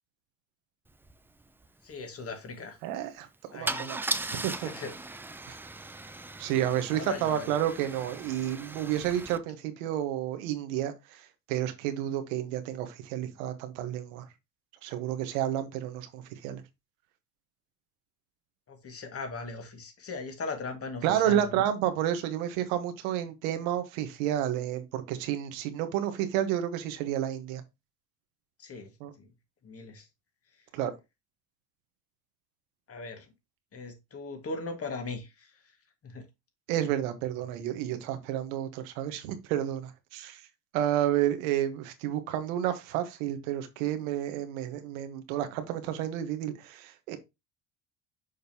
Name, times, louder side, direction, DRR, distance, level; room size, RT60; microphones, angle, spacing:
Car / Engine starting / Idling, 1.0-1.1 1.4-1.7 3.7-9.4, right 2 dB, 5° right, 0.3 m, -38 dB
voice 1, 1.8-2.8 3.5-3.9 4.5-4.9 6.9-7.5 18.7-21.6 28.6-28.9 29.2-29.3 29.6-30.0 32.9-33.3 33.7-35.5 36.0-36.2, left 3 dB, 35° left, 1.9 m, -39 dB
voice 2, 2.8-4.7 5.5-5.6 6.4-14.2 14.8-16.6 21.0-27.6 29.0-29.1 30.7-30.9 36.7-40.4 40.7-47.2, right 11 dB, 85° right, 1.2 m, -31 dB
6.5 x 5.1 x 2.8 m
supercardioid pair, 95°, 40 cm